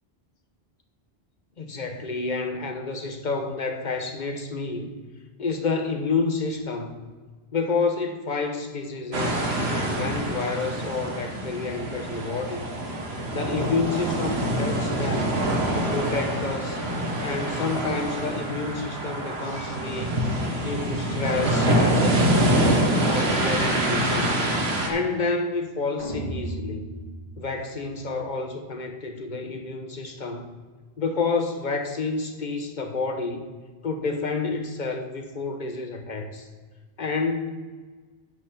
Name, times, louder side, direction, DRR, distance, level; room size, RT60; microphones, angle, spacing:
voice 1, 1.6-4.9 5.4-6.9 7.5-12.7 13.3-15.4 15.7-16.8 17.2-22.7 23.1-24.5 24.9-26.9 27.4-30.5 31.0-33.4 33.8-36.5 37.0-37.5, left 4 dB, 50° left, 5 dB, 1.1 m, -29 dB
sound 1, 9.1-24.9, right 1 dB, 80° right, 1.6 m, -25 dB
sound 2, 26.0-28.3, right 1 dB, 60° right, 1.8 m, -35 dB
9.6 x 5.5 x 6.1 m, 1.4 s
omnidirectional pair, 1.1 m